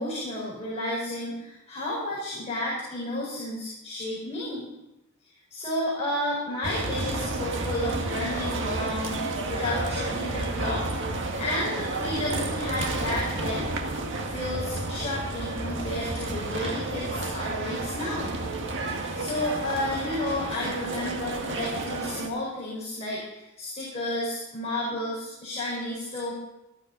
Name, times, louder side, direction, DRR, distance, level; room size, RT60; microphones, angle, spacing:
voice 1, 0.0-4.7 5.5-10.8 11.4-13.7 14.2-18.4 18.9-26.3, left 1 dB, 30° left, -7 dB, 4.8 m, -32 dB
sound 1, 6.6-22.3, right 2 dB, 55° right, 1.8 m, -31 dB
19.0 x 12.5 x 4.0 m, 0.93 s
head